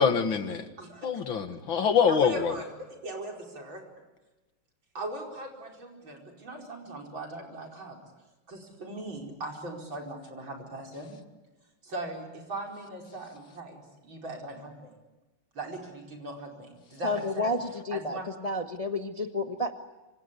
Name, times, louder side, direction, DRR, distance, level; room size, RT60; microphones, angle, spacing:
voice 1, 0.0-0.6 1.0-2.5, left 6 dB, 75° left, 8 dB, 2.5 m, -24 dB
voice 2, 0.8-1.1 2.1-2.7 3.0-3.8 4.9-8.0 8.5-11.1 11.8-14.9 15.5-17.6 17.9-18.2, right 1 dB, 70° right, 1 dB, 5.6 m, -39 dB
voice 3, 17.0-19.7, left 1 dB, 20° left, 6 dB, 1.2 m, -31 dB
26.0 x 25.5 x 8.4 m, 1.1 s
omnidirectional pair, 2.2 m